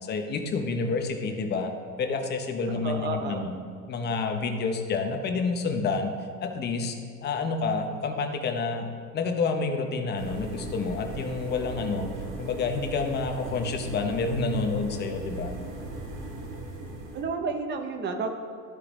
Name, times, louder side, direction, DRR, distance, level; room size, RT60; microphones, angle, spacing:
voice 1, 0.0-1.7 2.0-3.5 3.9-6.1 6.4-8.9 9.1-12.1 12.4-15.5, left 4 dB, 20° left, 5 dB, 0.7 m, -29 dB
voice 2, 2.7-3.5 17.1-18.3, right 4 dB, 20° right, 5 dB, 0.7 m, -31 dB
sound 1, 10.2-17.2, right 2 dB, 45° right, 1.6 m, -38 dB
12.5 x 4.7 x 3.4 m, 2.3 s
figure-of-eight pair, 80°, 47 cm